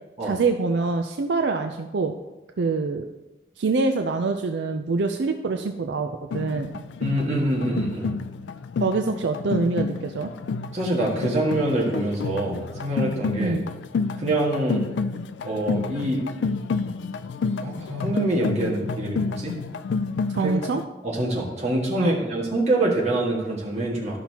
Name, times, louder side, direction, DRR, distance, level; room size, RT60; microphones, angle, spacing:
voice 1, 0.2-2.2 2.6-3.1 3.6-6.8 8.8-10.3 13.4-13.6 20.3-20.8 22.0-22.2, right 3 dB, 75° right, 5 dB, 0.4 m, -25 dB
sound 1, 6.3-20.8, left 4 dB, 80° left, 0.3 m, -30 dB
voice 2, 7.0-8.1 10.7-13.6 14.2-14.9 15.4-16.2 17.6-19.5 20.4-20.5 21.0-24.2, right 1 dB, 35° right, -4 dB, 1.7 m, -25 dB
12.5 x 5.8 x 2.9 m, 1.0 s
head